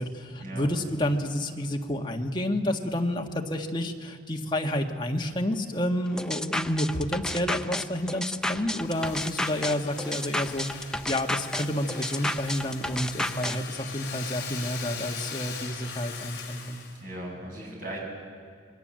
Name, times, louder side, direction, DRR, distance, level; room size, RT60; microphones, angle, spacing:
voice 1, 0.0-16.8, left 1 dB, 25° left, 2 dB, 1.6 m, -30 dB
sound 1, 6.2-13.6, left 1 dB, 5° left, 0.5 m, -32 dB
Domestic sounds home sounds, 8.8-17.0, left 6 dB, 60° left, 4.1 m, -40 dB
voice 2, 17.0-18.0, right 1 dB, 45° right, -1 dB, 7.2 m, -38 dB
27.5 x 21.5 x 7.6 m, 2.2 s
head